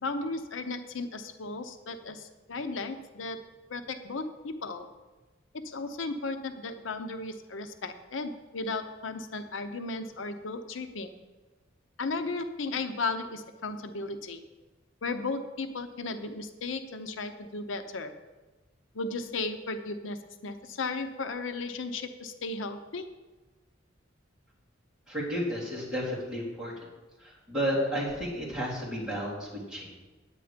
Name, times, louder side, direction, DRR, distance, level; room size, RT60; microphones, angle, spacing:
voice 1, 0.0-3.4 3.7-4.9 5.6-11.1 12.0-14.4 15.0-18.1 18.9-23.1, left 3 dB, 85° left, 8 dB, 0.7 m, -35 dB
voice 2, 25.1-26.7 27.2-30.0, equal, 5° right, -8 dB, 3.6 m, -32 dB
9.2 x 8.8 x 5.1 m, 1.2 s
head